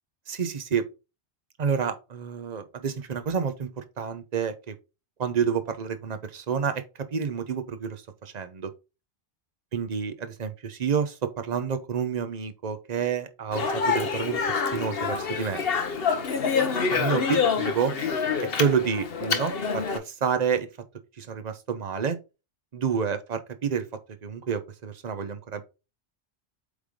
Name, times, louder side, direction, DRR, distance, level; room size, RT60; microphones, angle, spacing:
voice 1, 0.3-0.8 1.6-4.7 5.2-8.7 9.7-15.6 16.9-17.9 18.6-20.7 21.2-22.2 22.7-23.8 24.2-25.6, right 6 dB, 40° right, 0.9 m, -29 dB
Speech, 13.5-20.0, left 5 dB, 60° left, 1.2 m, -26 dB
8.3 x 3.5 x 3.7 m
omnidirectional pair, 1.1 m